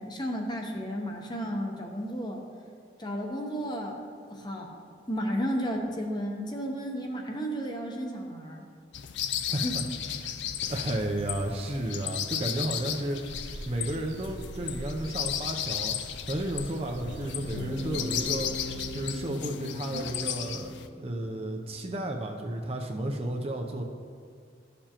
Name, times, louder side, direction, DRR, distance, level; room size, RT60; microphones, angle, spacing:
voice 1, 0.0-2.4 3.0-4.0 4.3-8.6 9.5-9.8, equal, 25° left, 1 dB, 0.8 m, -33 dB
sound 1, 8.9-20.9, left 9 dB, 75° left, 0.4 m, -35 dB
voice 2, 9.5-9.8 10.2-10.3 10.7-13.2 13.7-16.0 16.3-18.5 18.9-23.8, right 1 dB, 35° right, 2 dB, 0.5 m, -32 dB
sound 2, 13.3-19.1, right 1 dB, 85° right, 0.7 m, -44 dB
sound 3, 17.0-21.2, left 1 dB, 50° left, 1.3 m, -39 dB
12.5 x 6.8 x 2.9 m, 2.2 s
head